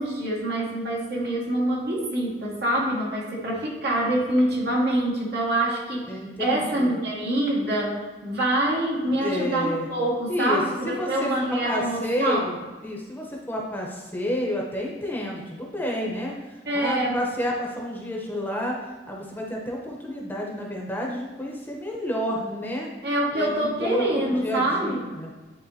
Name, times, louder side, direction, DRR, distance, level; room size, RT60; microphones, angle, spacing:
voice 1, 0.0-6.1 6.4-12.4 16.6-17.2 23.0-25.0, right 1 dB, 65° right, -4 dB, 1.8 m, -25 dB
voice 2, 6.1-7.0 9.1-9.9 10.3-18.8 19.1-22.9 23.3-25.3, equal, 10° left, -2 dB, 0.9 m, -30 dB
10.5 x 3.7 x 2.8 m, 1.3 s
head